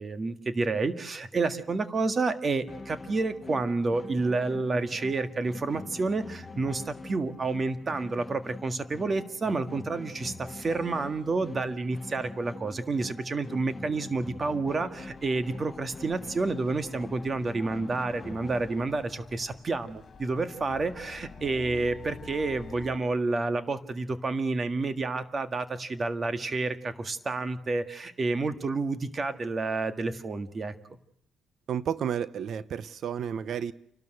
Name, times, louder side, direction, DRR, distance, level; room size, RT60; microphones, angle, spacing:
voice 1, 0.0-30.7, right 3 dB, 35° right, 10 dB, 1.7 m, -29 dB
sound 1, 2.7-18.7, left 3 dB, 20° left, 1.9 m, -44 dB
sound 2, 14.9-23.0, left 6 dB, 45° left, 2.8 m, -48 dB
voice 2, 31.7-33.7, right 8 dB, 65° right, 17 dB, 0.8 m, -31 dB
29.0 x 12.5 x 7.9 m, 0.73 s
cardioid pair, 90°, 0 cm